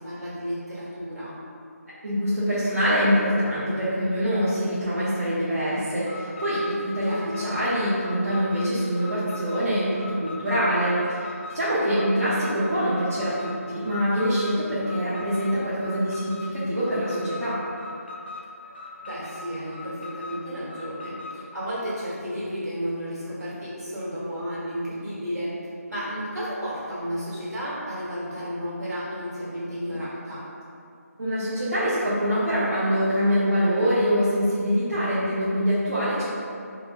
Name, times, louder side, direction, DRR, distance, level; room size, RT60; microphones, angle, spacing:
voice 1, 0.0-1.4 7.0-7.5 19.0-25.5 25.9-30.5, equal, 85° right, -9 dB, 1.3 m, -32 dB
voice 2, 2.0-11.3 11.5-17.6 31.2-36.3, equal, 60° right, -11 dB, 0.6 m, -24 dB
Alarm, 6.0-21.4, left 3 dB, 40° left, 0.3 m, -41 dB
2.9 x 2.1 x 2.5 m, 2.5 s
figure-of-eight pair, 180°, 9 cm